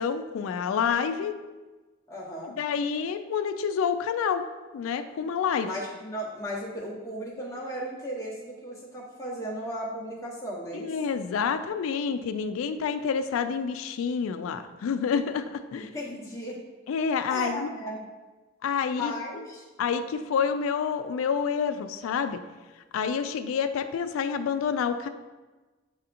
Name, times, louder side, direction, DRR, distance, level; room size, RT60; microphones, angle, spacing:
voice 1, 0.0-1.3 2.4-4.4 4.7-5.7 10.7-15.9 16.9-17.7 18.6-19.1 19.8-22.4 22.9-25.1, left 6 dB, 90° left, 10 dB, 0.3 m, -28 dB
voice 2, 2.1-2.6 5.6-10.9 15.7-16.6 17.3-18.0 18.8-19.7, equal, 15° left, -6 dB, 1.0 m, -36 dB
7.5 x 2.8 x 2.5 m, 1.2 s
head